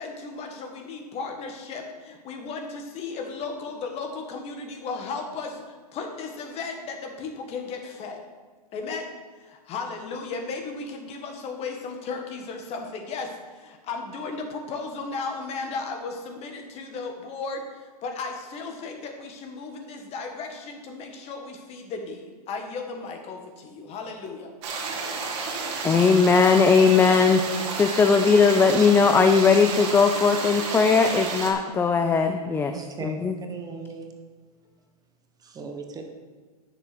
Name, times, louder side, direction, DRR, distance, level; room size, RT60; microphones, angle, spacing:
voice 1, 0.0-8.2 8.7-9.1 9.4-24.5, left 4 dB, 30° left, 4 dB, 1.8 m, -35 dB
sound 1, 24.6-31.5, right 4 dB, 50° right, 2.3 m, -31 dB
voice 2, 25.8-32.7 33.0-33.4, left 5 dB, 10° left, 6 dB, 0.5 m, -19 dB
voice 3, 32.7-34.1 35.4-36.1, right 4 dB, 20° right, 4 dB, 1.2 m, -38 dB
9.8 x 6.8 x 6.0 m, 1.4 s
hypercardioid pair, 125°, 20 cm